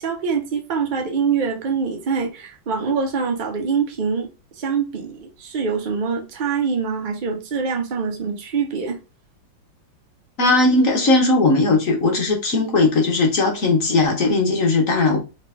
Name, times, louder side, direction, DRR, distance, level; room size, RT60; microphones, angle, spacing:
voice 1, 0.0-4.3 4.6-9.0, right 5 dB, 40° right, 0.7 m, -24 dB
voice 2, 10.4-15.2, left 2 dB, 50° left, 1.3 m, -18 dB
4.0 x 3.3 x 3.3 m
omnidirectional pair, 2.0 m